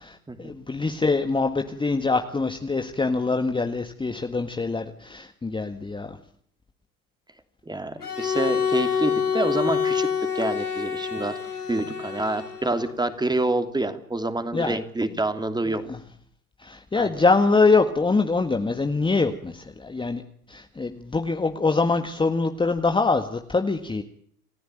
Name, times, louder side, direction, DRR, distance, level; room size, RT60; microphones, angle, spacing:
voice 1, 0.0-6.2 14.5-14.8 15.9-16.0 16.6-20.2 20.5-24.0, left 3 dB, 10° left, 5 dB, 1.8 m, -24 dB
voice 2, 7.7-11.4 11.7-15.8 17.0-17.2, right 2 dB, 10° right, 8 dB, 3.0 m, -27 dB
Bowed string instrument, 8.0-13.0, left 7 dB, 90° left, 2.8 m, -27 dB
29.0 x 15.5 x 9.1 m, 0.64 s
figure-of-eight pair, 80°, 44 cm